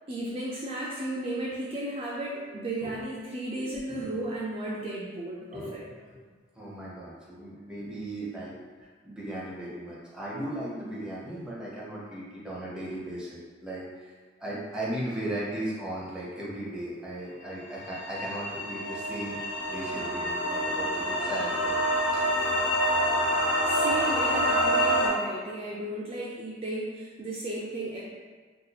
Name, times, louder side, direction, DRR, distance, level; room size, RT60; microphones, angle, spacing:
voice 1, 0.1-5.8 23.7-28.0, right 1 dB, 30° right, -6 dB, 0.4 m, -34 dB
voice 2, 5.5-6.2 6.5-8.5 8.8-19.4 19.6-21.8 22.1-22.3, right 1 dB, 5° right, -6 dB, 0.7 m, -37 dB
sound 1, 17.8-25.1, equal, 65° left, 0.9 m, -27 dB
2.7 x 2.3 x 4.0 m, 1.5 s
head